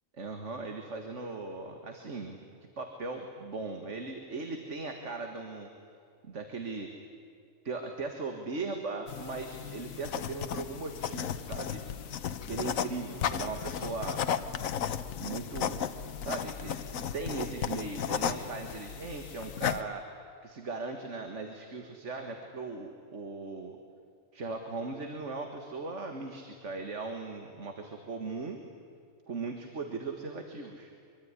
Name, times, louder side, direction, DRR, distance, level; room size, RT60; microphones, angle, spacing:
voice 1, 0.1-2.4 2.8-5.7 6.3-6.9 7.6-11.8 12.5-14.2 15.2-15.9 16.2-16.8 17.1-20.0 20.4-23.8 24.3-28.6 29.3-30.9, right 3 dB, 65° right, 4 dB, 2.1 m, -38 dB
sound 1, 9.1-19.8, left 8 dB, 85° left, 1.3 m, -35 dB
24.0 x 24.0 x 9.7 m, 2.3 s
omnidirectional pair, 1.4 m